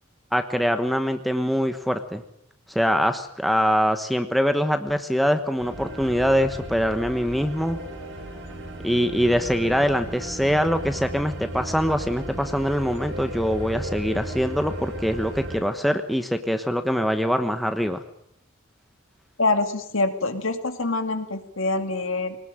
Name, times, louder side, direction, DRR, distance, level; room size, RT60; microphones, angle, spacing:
voice 1, 0.3-2.2 2.7-7.8 8.8-18.0, equal, ahead, 7 dB, 1.1 m, -23 dB
sound 1, 5.6-15.6, right 1 dB, 60° right, 6.3 m, -35 dB
voice 2, 19.4-22.4, left 3 dB, 60° left, 7 dB, 2.4 m, -25 dB
23.0 x 19.0 x 8.9 m, 0.73 s
head